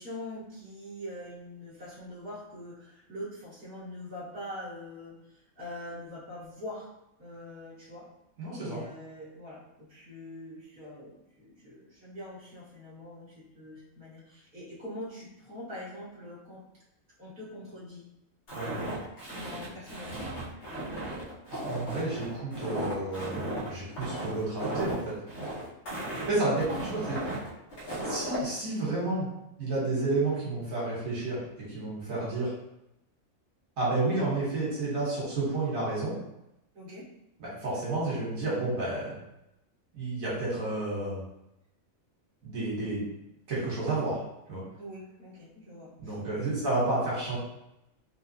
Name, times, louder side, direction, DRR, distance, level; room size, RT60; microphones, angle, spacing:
voice 1, 0.0-6.9 7.2-8.1 8.6-16.6 17.2-18.0 19.2-20.3 25.9-26.5 36.7-37.0 44.8-46.6, left 1 dB, 40° right, -9 dB, 1.6 m, -43 dB
voice 2, 8.4-8.8 18.5-18.7 21.5-25.1 26.3-27.2 28.0-29.3 29.6-31.4 31.7-32.5 33.8-36.1 37.4-39.1 39.9-41.2 42.4-43.1 43.5-44.2 44.5-44.6 46.0-47.4, right 2 dB, 75° right, -7 dB, 1.6 m, -30 dB
Walk footsteps, 18.5-28.4, right 1 dB, 55° left, 1.3 m, -36 dB
3.7 x 2.8 x 2.8 m, 0.86 s
omnidirectional pair, 1.4 m